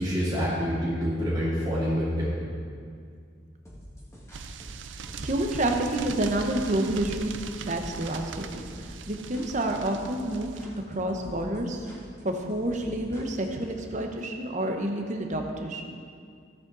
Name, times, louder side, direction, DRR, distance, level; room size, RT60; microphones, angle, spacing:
voice 1, 0.0-2.3, equal, 25° right, -12 dB, 2.5 m, -27 dB
sound 1, 3.6-13.7, equal, 15° left, 1.8 m, -47 dB
sound 2, 4.3-10.6, right 5 dB, 80° right, 0.5 m, -40 dB
voice 2, 5.2-7.3 7.7-10.5 10.9-11.9 12.2-16.0, right 1 dB, 40° right, 3 dB, 0.9 m, -29 dB
13.5 x 8.1 x 4.0 m, 2.2 s
head